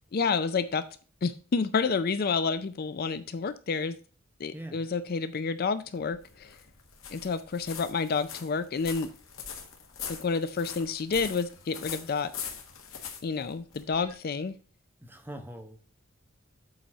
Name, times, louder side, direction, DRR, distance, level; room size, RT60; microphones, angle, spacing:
voice 1, 0.1-0.9 1.2-4.0 4.4-6.6 7.1-9.1 10.1-12.3 13.2-14.6, left 5 dB, 50° left, 12 dB, 0.4 m, -29 dB
voice 2, 4.5-4.9 15.0-15.9, right 1 dB, 10° right, 4 dB, 1.1 m, -43 dB
sound 1, 6.0-14.1, left 7 dB, 85° left, 1.5 m, -42 dB
7.8 x 4.2 x 5.0 m, 0.38 s
head